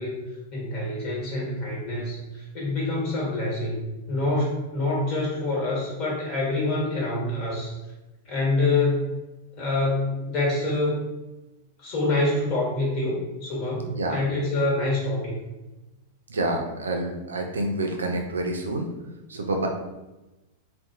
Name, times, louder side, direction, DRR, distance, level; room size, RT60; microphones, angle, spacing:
voice 1, 0.0-7.7 8.2-9.1 9.5-11.0 11.8-15.4, left 2 dB, 40° left, -4 dB, 1.4 m, -26 dB
voice 2, 13.9-14.2 16.3-18.9 19.3-19.7, right 2 dB, 75° right, 3 dB, 0.4 m, -28 dB
2.7 x 2.1 x 2.6 m, 1.0 s
figure-of-eight pair, 95°, 0 cm